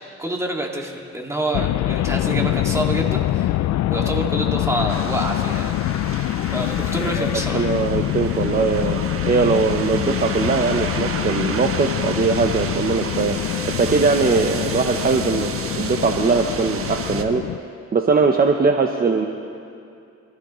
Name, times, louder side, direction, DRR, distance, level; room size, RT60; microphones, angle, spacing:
voice 1, 0.2-3.6 3.9-5.8 6.5-7.7, right 1 dB, 10° right, 0 dB, 2.2 m, -27 dB
sound 1, 1.5-17.6, left 14 dB, 65° left, 0.5 m, -24 dB
sound 2, 4.9-17.2, right 5 dB, 45° right, 1.2 m, -32 dB
voice 2, 7.0-9.0 9.3-13.4 13.8-17.4 17.9-19.3, right 4 dB, 30° right, 4 dB, 0.9 m, -20 dB
26.5 x 14.5 x 3.2 m, 2.5 s
cardioid pair, 90°, 30 cm